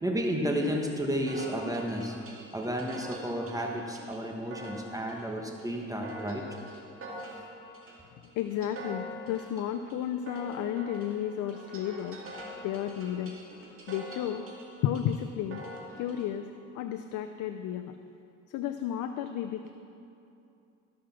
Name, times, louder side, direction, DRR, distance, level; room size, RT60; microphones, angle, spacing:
voice 1, 0.0-2.1 2.5-6.4, equal, 10° right, 1 dB, 1.2 m, -32 dB
sound 1, 1.3-16.3, equal, 45° right, 2.3 m, -45 dB
voice 2, 8.1-12.2 12.6-13.4 13.9-14.5 14.8-15.6 15.9-16.5 16.7-18.0 18.5-19.7, left 10 dB, 80° left, 8 dB, 0.5 m, -33 dB
13.5 x 6.3 x 5.8 m, 2.6 s
cardioid pair, 90°, 30 cm